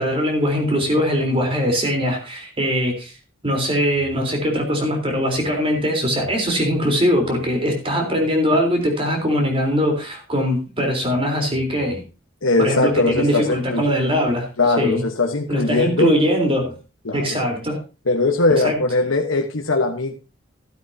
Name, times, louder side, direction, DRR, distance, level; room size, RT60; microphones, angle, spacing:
voice 1, 0.0-3.1 3.4-12.0 12.6-14.5 14.8-15.0 15.5-16.7 17.1-17.8 18.6-18.8, equal, 30° right, 2 dB, 3.8 m, -21 dB
voice 2, 12.4-13.8 14.6-16.1 17.0-17.4 18.1-20.2, left 2 dB, 90° left, 2 dB, 1.2 m, -20 dB
13.5 x 11.5 x 2.8 m, 0.30 s
head